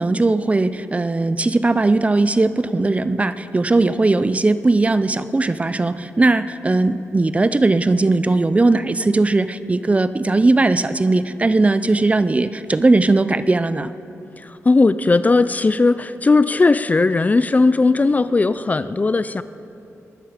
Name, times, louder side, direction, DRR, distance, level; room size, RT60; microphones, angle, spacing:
voice 1, 0.0-13.9, right 2 dB, 25° right, 13 dB, 0.5 m, -18 dB
voice 2, 14.4-19.4, left 3 dB, 30° left, 14 dB, 0.4 m, -17 dB
22.0 x 13.0 x 5.0 m, 2.8 s
wide cardioid pair, 100°, 5 cm